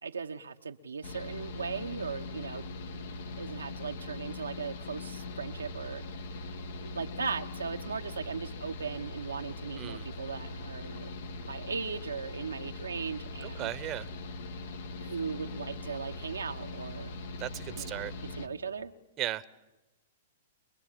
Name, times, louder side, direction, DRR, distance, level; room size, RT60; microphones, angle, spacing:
voice 1, 0.0-2.7 3.0-6.0 6.8-11.1 11.4-13.7 15.0-17.1 17.7-18.1 18.4-18.9, right 5 dB, 90° right, 5 dB, 1.1 m, -38 dB
Mechanical fan, 1.0-18.5, left 2 dB, 70° left, 1.6 m, -41 dB
voice 2, 9.8-10.1 13.4-14.1 17.4-18.1 19.2-19.4, right 14 dB, 30° right, 15 dB, 0.9 m, -36 dB
25.5 x 21.0 x 7.5 m, 1.1 s
hypercardioid pair, 120°, 0 cm